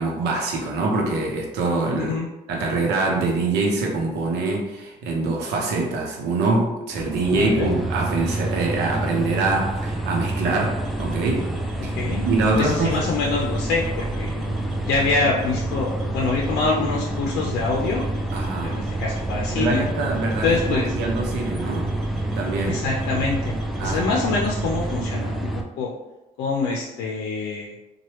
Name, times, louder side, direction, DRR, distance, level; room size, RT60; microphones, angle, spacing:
voice 1, 0.0-2.1 2.5-11.5 11.8-11.9 12.2-13.0 18.3-18.8 19.6-21.9 22.4-22.8 23.8-24.2, right 3 dB, 80° right, 0 dB, 0.8 m, -24 dB
sound 1, 6.9-25.6, right 1 dB, ahead, 0.4 m, -28 dB
voice 2, 7.3-7.7 12.0-12.3 12.6-14.3 14.8-18.0 18.6-19.8 20.4-20.9 22.7-23.6 23.8-25.5 25.8-25.9 26.4-27.7, left 4 dB, 85° left, -2 dB, 0.5 m, -25 dB
sound 2, 10.8-25.0, right 2 dB, 35° right, 1.2 m, -38 dB
3.1 x 2.2 x 3.0 m, 1.0 s
cardioid pair, 110°, 17 cm